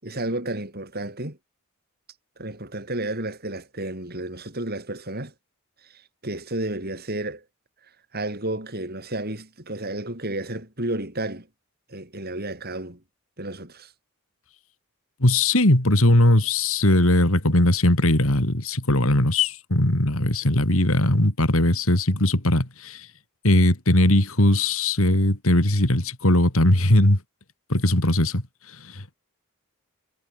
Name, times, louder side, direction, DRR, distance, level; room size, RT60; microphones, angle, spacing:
voice 1, 0.0-1.4 2.4-5.3 5.8-7.4 8.1-11.5 11.9-13.0 13.4-13.9, right 1 dB, 45° right, 6.9 m, -32 dB
voice 2, 15.2-23.1 23.4-27.2 27.7-28.4 28.8-29.2, left 1 dB, 70° left, 3.5 m, -19 dB
head